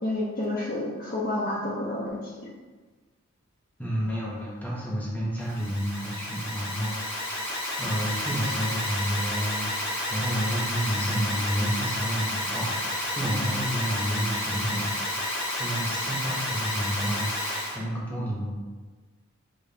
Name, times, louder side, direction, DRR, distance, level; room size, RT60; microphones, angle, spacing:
voice 1, 0.0-2.5 18.1-18.2, left 1 dB, 40° left, -5 dB, 0.7 m, -30 dB
voice 2, 3.8-7.5 7.8-14.9 15.2-15.3 15.5-17.3 17.7-18.5, equal, 10° left, -6 dB, 0.9 m, -30 dB
Alarm, 5.4-17.8, left 1 dB, 75° left, 1.3 m, -31 dB
6.8 x 2.8 x 2.7 m, 1.3 s
head